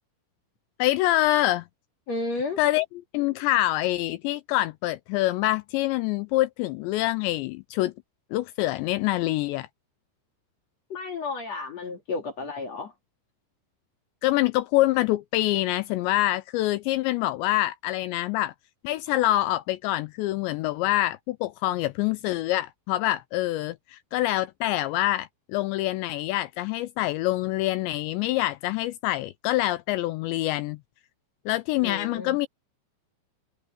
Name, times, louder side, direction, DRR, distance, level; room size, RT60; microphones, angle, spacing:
voice 1, 0.8-1.7 2.6-2.9 3.1-7.9 8.3-9.7 14.2-18.5 18.8-30.8 31.5-32.5, left 16 dB, 85° left, 2.7 m, -25 dB
voice 2, 2.1-2.6 10.9-12.9 31.8-32.4, left 3 dB, 45° left, 2.5 m, -32 dB
omnidirectional pair, 5.5 m